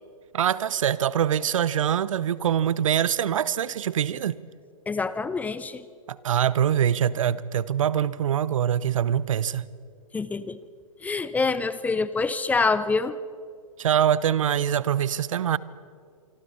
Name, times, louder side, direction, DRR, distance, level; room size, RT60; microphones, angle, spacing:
voice 1, 0.3-4.4 6.1-9.7 13.8-15.6, right 9 dB, 65° right, 0.8 m, -24 dB
voice 2, 4.9-5.8 10.1-10.6 11.0-13.2, left 4 dB, 10° left, 0.6 m, -26 dB
25.5 x 25.5 x 4.3 m
hypercardioid pair, 120°, 18 cm